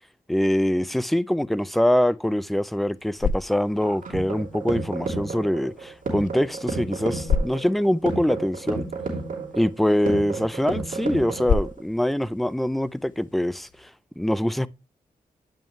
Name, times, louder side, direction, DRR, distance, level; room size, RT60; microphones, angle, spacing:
voice 1, 0.3-8.9 9.5-13.9 14.2-14.7, equal, ahead, 0.4 m, -24 dB
sound 1, 2.8-13.9, left 5 dB, 60° left, 0.6 m, -33 dB
sound 2, 3.8-11.8, right 3 dB, 60° right, 2.9 m, -32 dB
8.7 x 5.5 x 3.1 m
cardioid pair, 90°, 15 cm